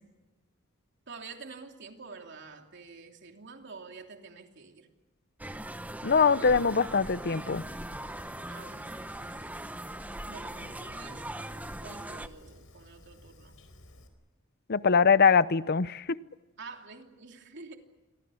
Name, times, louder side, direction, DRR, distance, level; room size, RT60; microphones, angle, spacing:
voice 1, 1.1-4.9 8.5-8.9 10.3-11.3 11.7-13.6 16.6-17.8, right 4 dB, 60° right, 3 dB, 3.1 m, -47 dB
sound 1, 5.4-12.3, right 1 dB, 10° right, 0.9 m, -40 dB
voice 2, 6.0-7.6 14.7-16.2, left 5 dB, 50° left, 16 dB, 0.8 m, -23 dB
Fire, 6.1-14.1, left 1 dB, 85° left, 4.5 m, -55 dB
29.0 x 23.5 x 6.5 m, 1.2 s
head